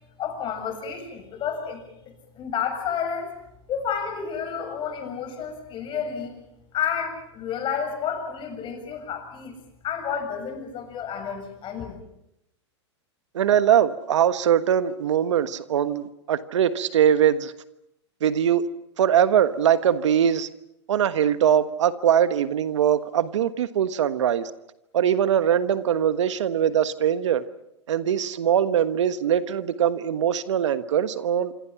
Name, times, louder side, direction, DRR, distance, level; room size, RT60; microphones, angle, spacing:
voice 1, 0.2-3.3 3.7-6.3 6.7-9.5 9.8-12.0, left 7 dB, 30° left, 6 dB, 7.3 m, -30 dB
voice 2, 13.3-17.5 18.2-18.7 19.0-20.5 20.9-24.5 24.9-27.4 27.9-31.5, right 9 dB, 75° right, 12 dB, 1.4 m, -22 dB
26.5 x 26.5 x 6.0 m, 0.83 s
hypercardioid pair, 115°, 15 cm